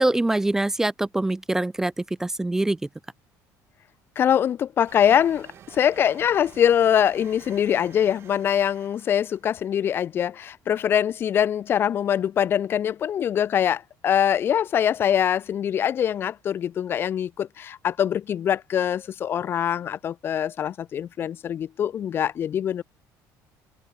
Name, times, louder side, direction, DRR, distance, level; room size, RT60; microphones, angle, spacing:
voice 1, 0.0-2.8, right 2 dB, 5° right, 0.4 m, -24 dB
voice 2, 4.2-22.8, left 9 dB, 30° left, 0.6 m, -23 dB
sound 1, 4.9-9.6, right 10 dB, 35° right, 3.6 m, -49 dB
open air
cardioid pair, 180°, 7 cm